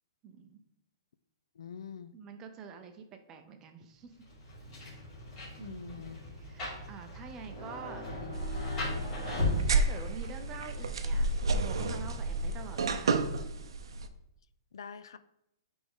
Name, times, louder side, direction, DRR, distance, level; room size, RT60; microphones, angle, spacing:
voice 1, 0.2-0.6 2.1-4.1 5.6-6.0 6.4-8.0 9.2-13.2, right 6 dB, 20° right, 6 dB, 0.5 m, -47 dB
voice 2, 1.6-2.2 5.6-6.2 14.7-15.2, left 7 dB, 75° left, 13 dB, 0.4 m, -45 dB
Rain, 4.2-13.3, left 1 dB, 20° left, 2.7 m, -38 dB
sound 1, 8.3-14.1, right 3 dB, 90° right, 0.6 m, -31 dB
10.0 x 3.5 x 3.7 m, 0.82 s
hypercardioid pair, 170°, 3 cm